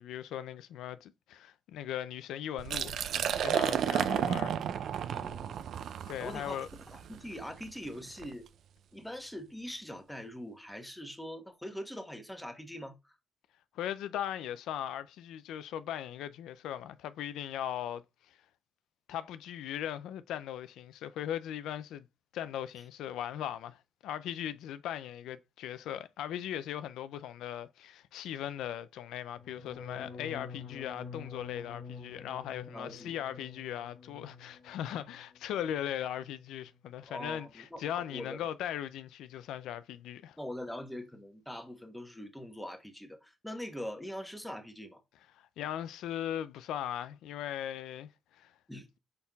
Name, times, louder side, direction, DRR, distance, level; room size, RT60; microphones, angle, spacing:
voice 1, 0.0-3.0 3.3-4.6 4.9-5.1 6.1-6.7 13.7-18.4 19.1-22.1 22.3-40.4 45.3-48.5, left 11 dB, 85° left, 0.3 m, -39 dB
Liquid, 2.6-8.3, right 9 dB, 70° right, 0.4 m, -33 dB
voice 2, 5.1-5.7 6.2-6.6 6.9-8.5 8.9-13.1 32.7-33.2 37.1-38.4 40.4-45.0 48.7-48.9, equal, 5° left, 1.1 m, -43 dB
sound 1, 29.4-35.3 35.6-36.1 36.4-36.8, left 5 dB, 60° left, 0.8 m, -48 dB
5.3 x 4.4 x 2.3 m
cardioid pair, 90°, 0 cm